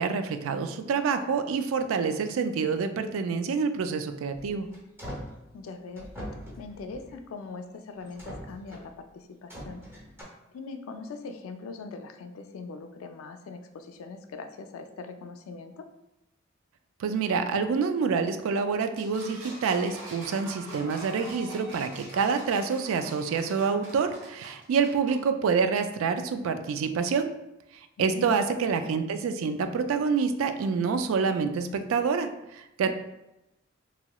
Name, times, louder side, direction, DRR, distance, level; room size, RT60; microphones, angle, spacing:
voice 1, 0.0-4.7 17.0-27.3 27.7-32.9, right 5 dB, 85° right, 8 dB, 0.3 m, -27 dB
sound 1, 4.3-5.4 5.9-7.2 7.9-8.9 9.5-10.2, equal, 10° right, 0.8 m, -42 dB
voice 2, 5.5-6.1 6.6-9.8 10.5-15.9 28.0-28.6 32.8-32.9, left 4 dB, 85° left, 7 dB, 0.3 m, -41 dB
sound 2, 19.0-25.2, right 1 dB, 60° right, 1.2 m, -44 dB
2.9 x 2.9 x 2.3 m, 0.92 s
head